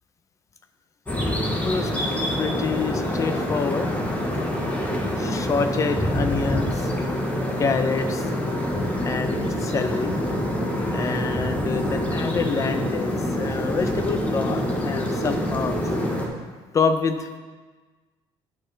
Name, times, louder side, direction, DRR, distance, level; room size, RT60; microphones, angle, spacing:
sound 1, 1.1-16.3, left 1 dB, 15° left, 1.0 m, -26 dB
voice 1, 1.5-1.9 2.4-3.9 5.2-6.9 7.6-8.3 9.0-10.2 10.9-15.7 16.7-17.4, left 5 dB, 30° left, 8 dB, 0.6 m, -27 dB
11.0 x 4.5 x 3.3 m, 1.4 s
cardioid pair, 120°, 10 cm